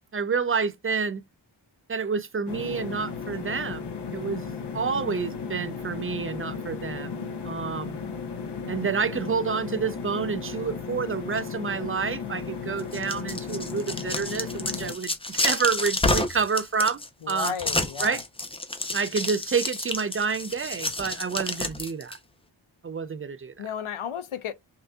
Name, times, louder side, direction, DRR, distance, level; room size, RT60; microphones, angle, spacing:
voice 1, 0.1-1.2 1.9-4.5 4.7-7.2 7.4-8.0 8.7-17.0 17.3-17.5 18.0-18.2 18.9-22.2 22.8-23.7, right 5 dB, 30° right, 0.4 m, -29 dB
sound 1, 2.5-14.9, left 5 dB, 55° left, 0.9 m, -35 dB
sound 2, 12.8-22.2, left 2 dB, 10° left, 0.6 m, -29 dB
voice 2, 17.2-18.2 23.6-24.5, left 8 dB, 90° left, 0.7 m, -34 dB
5.5 x 2.7 x 2.3 m
wide cardioid pair, 110°, 48 cm